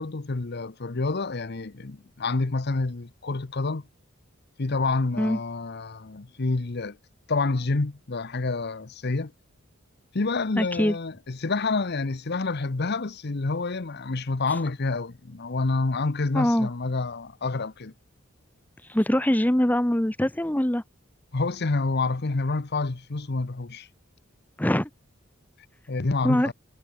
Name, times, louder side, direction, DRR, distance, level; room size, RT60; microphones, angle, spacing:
voice 1, 0.0-3.9 4.6-7.0 7.3-9.3 10.1-17.9 21.3-23.9 25.9-26.5, left 3 dB, 50° left, 0.9 m, -28 dB
voice 2, 10.6-11.0 16.3-16.7 18.9-20.8 24.6-24.9 26.2-26.5, left 1 dB, 10° left, 0.8 m, -23 dB
head